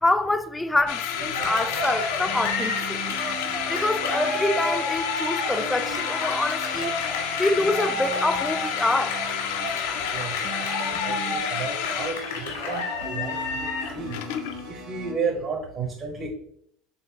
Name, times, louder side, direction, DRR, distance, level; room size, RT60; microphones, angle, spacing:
voice 1, 0.0-3.3 3.7-9.2, left 2 dB, 10° left, 0.3 m, -26 dB
sound 1, 0.9-14.7, left 9 dB, 75° left, 0.4 m, -31 dB
sound 2, 1.1-15.1, right 2 dB, 65° right, 1.6 m, -40 dB
Cheering, 1.4-14.0, left 2 dB, 90° left, 1.5 m, -31 dB
voice 2, 10.8-11.1 11.4-12.2 12.7-13.4 13.9-14.2 14.7-16.3, right 5 dB, 45° right, 0.9 m, -31 dB
4.0 x 3.6 x 2.8 m
hypercardioid pair, 90°, 0 cm